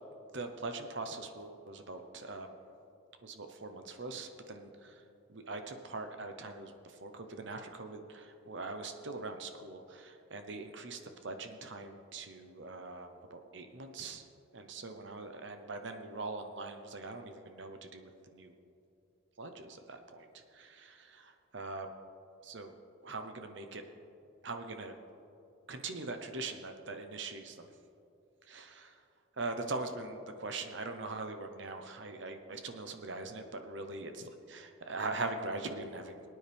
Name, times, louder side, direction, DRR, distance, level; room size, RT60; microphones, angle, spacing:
voice 1, 0.3-2.5 3.2-5.0 5.3-14.3 14.7-18.5 19.4-21.9 22.4-22.7 23.0-23.8 24.4-24.9 25.7-27.7 28.5-29.0 29.4-36.2, right 3 dB, 60° right, 6 dB, 0.9 m, -42 dB
22.0 x 9.4 x 3.5 m, 2.7 s
head